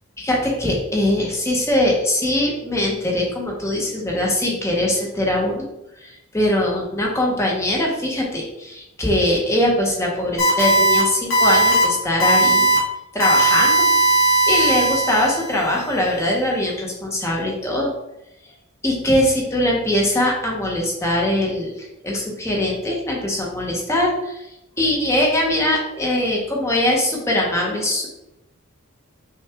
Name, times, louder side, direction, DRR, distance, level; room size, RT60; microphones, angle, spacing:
voice 1, 0.2-5.6 6.0-12.7 13.1-13.8 14.5-17.9 18.8-24.5 24.8-28.1, left 1 dB, 15° left, -2 dB, 0.7 m, -21 dB
sound 1, 10.4-11.0 11.3-11.8 12.2-12.8 13.2-15.5, right 2 dB, 65° left, 1.3 m, -17 dB
5.6 x 2.3 x 3.4 m, 0.89 s
head